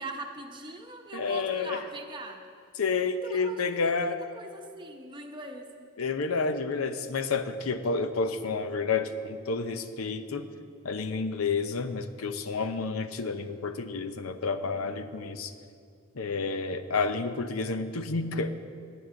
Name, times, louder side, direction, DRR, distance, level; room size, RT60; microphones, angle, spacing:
voice 1, 0.0-2.4 3.2-3.6 3.8-5.7, right 2 dB, 20° right, 2 dB, 0.9 m, -41 dB
voice 2, 1.1-1.9 2.8-4.2 6.0-10.5 10.8-15.5 16.1-18.5, left 4 dB, 85° left, 10 dB, 0.7 m, -30 dB
18.5 x 9.5 x 3.8 m, 2.3 s
head